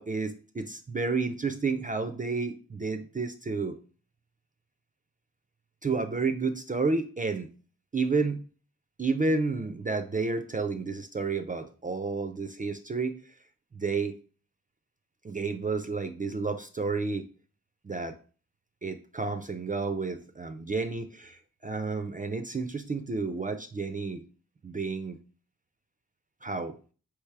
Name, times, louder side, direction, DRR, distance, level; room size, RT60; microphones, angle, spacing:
voice 1, 0.0-3.8 5.8-7.5 7.9-8.5 9.0-13.2 13.7-14.2 15.2-17.2 17.8-18.2 18.8-24.2 24.6-25.2 26.4-26.8, right 4 dB, 25° right, 8 dB, 0.4 m, -31 dB
3.3 x 3.0 x 4.6 m, 0.38 s
cardioid pair, 55°, 32 cm